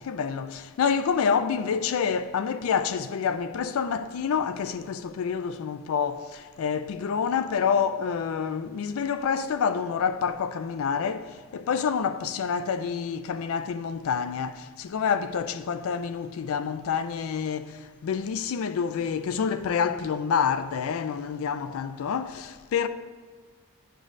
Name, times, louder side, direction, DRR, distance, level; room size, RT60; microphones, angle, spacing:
voice 1, 0.0-22.9, left 6 dB, 80° left, 0.3 m, -28 dB
9.0 x 5.2 x 2.5 m
head